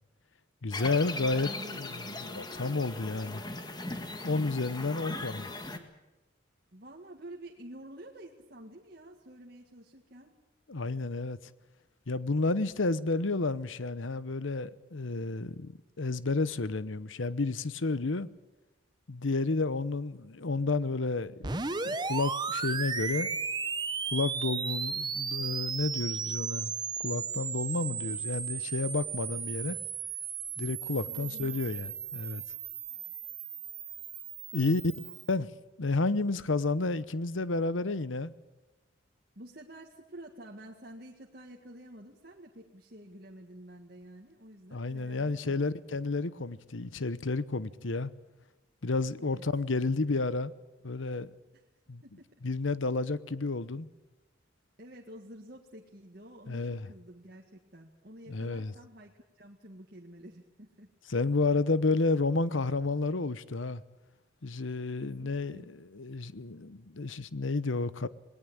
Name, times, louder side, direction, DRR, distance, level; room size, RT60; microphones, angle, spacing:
voice 1, 0.6-1.5 1.8-1.9 2.3-3.4 4.2-5.4 10.7-11.4 12.1-18.3 19.1-23.3 24.1-26.7 27.0-29.8 30.6-32.4 34.5-34.8 35.3-35.5 35.8-38.3 44.7-48.1 48.8-50.5 50.8-51.3 51.9-52.0 52.4-53.9 56.5-56.9 58.3-58.7 61.1-63.8 64.4-68.1, left 3 dB, 80° left, 0.9 m, -31 dB
sound 1, 0.7-5.8, left 2 dB, 20° left, 1.7 m, -39 dB
voice 2, 1.3-1.8 4.8-5.3 6.7-10.3 31.1-31.7 32.9-33.2 34.6-34.7 35.0-35.2 39.4-45.8 49.2-49.4 51.5-51.6 52.0-52.3 54.8-60.9 65.0-65.7, right 1 dB, 50° right, 1.9 m, -49 dB
sound 2, 21.4-35.3, right 6 dB, 20° right, 0.9 m, -35 dB
20.0 x 18.5 x 8.8 m
head